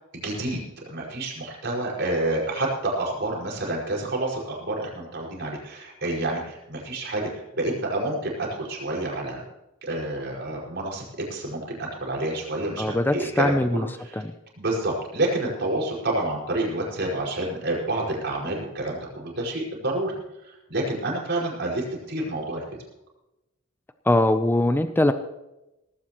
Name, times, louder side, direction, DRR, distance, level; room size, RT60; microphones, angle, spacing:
voice 1, 0.1-0.6 0.9-9.4 9.8-11.0 11.3-14.2 14.6-20.1 20.4-22.6, right 2 dB, 55° right, -2 dB, 5.3 m, -28 dB
voice 2, 12.8-13.9 14.2-14.3 24.1-25.1, left 1 dB, 10° left, 9 dB, 0.5 m, -21 dB
18.5 x 16.5 x 3.0 m, 0.95 s
head